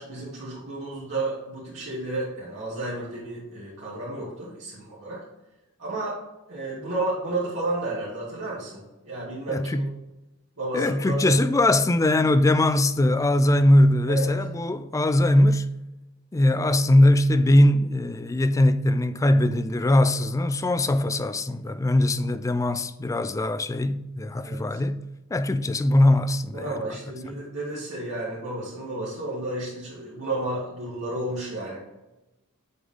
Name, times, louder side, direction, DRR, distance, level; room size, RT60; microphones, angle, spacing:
voice 1, 0.0-5.2 5.8-6.2 6.5-9.9 10.6-11.3 14.1-14.3 20.1-20.2 24.4-24.8 26.5-31.8, right 2 dB, 65° right, 2.2 m, -32 dB
voice 2, 9.5-9.9 10.7-15.7 16.3-25.0 25.3-26.7 27.3-27.4, left 1 dB, 15° left, 0.3 m, -21 dB
7.9 x 3.9 x 3.6 m
head